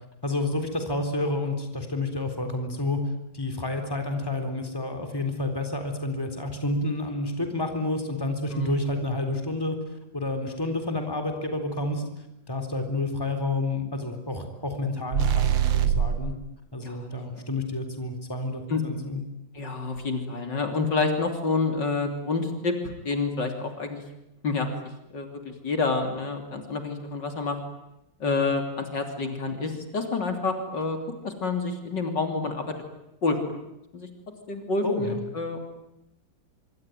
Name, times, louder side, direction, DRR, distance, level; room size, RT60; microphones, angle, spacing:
voice 1, 0.2-3.0 3.3-9.8 10.1-12.0 12.5-16.3 16.7-19.2 34.8-35.2, left 2 dB, 10° left, 6 dB, 3.9 m, -29 dB
sound 1, 15.1-16.3, right 9 dB, 80° right, 2.0 m, -23 dB
voice 2, 16.8-17.5 18.7-18.8 19.5-22.7 23.0-24.0 24.4-24.7 25.1-27.6 28.2-31.0 31.2-32.8 33.2-33.4 33.9-34.1 34.5-35.6, left 3 dB, 65° left, 5 dB, 3.8 m, -28 dB
25.5 x 24.5 x 9.3 m, 0.87 s
omnidirectional pair, 2.1 m